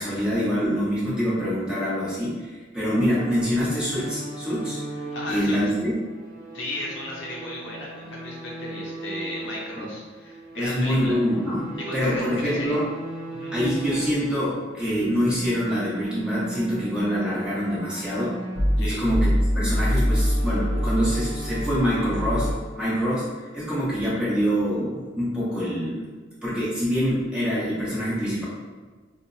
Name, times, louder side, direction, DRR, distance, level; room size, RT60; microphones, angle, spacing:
voice 1, 0.0-4.8 5.3-5.9 9.8-9.9 10.5-12.9 13.3-18.4 18.8-19.3 19.5-22.5 22.8-23.3 23.5-26.1 26.4-28.4, equal, 5° right, -10 dB, 1.0 m, -25 dB
sound 1, 2.8-9.9 10.2-14.3 14.9-22.5, equal, 65° right, 0.8 m, -30 dB
voice 2, 5.1-5.6 6.5-11.2 11.7-12.8 13.3-13.5 18.8-19.0, left 1 dB, 60° left, -3 dB, 0.6 m, -35 dB
4.1 x 2.1 x 2.6 m, 1.4 s
head